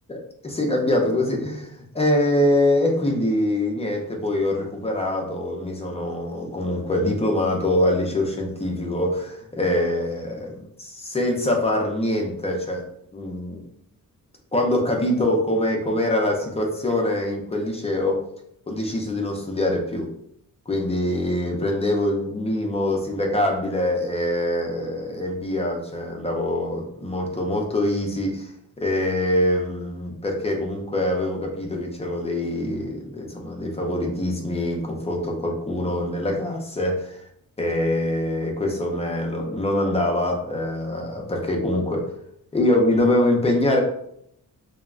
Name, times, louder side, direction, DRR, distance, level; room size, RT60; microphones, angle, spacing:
voice 1, 0.4-12.8 13.1-13.7 14.5-18.2 18.7-20.1 20.7-28.5 28.8-37.2 37.6-42.0 42.5-43.8, left 1 dB, 20° left, 0 dB, 0.3 m, -24 dB
3.4 x 2.0 x 2.2 m, 0.73 s
wide cardioid pair, 175°, 35 cm